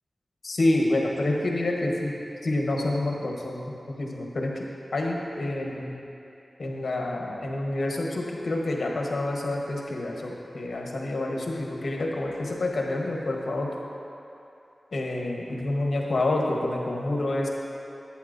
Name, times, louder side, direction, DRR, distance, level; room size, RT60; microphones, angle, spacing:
voice 1, 0.4-2.1 2.4-4.6 4.9-6.0 6.6-13.7 14.9-17.5, left 2 dB, 75° left, -1 dB, 1.0 m, -28 dB
11.5 x 8.5 x 2.6 m, 2.8 s
cardioid pair, 45°, 0 cm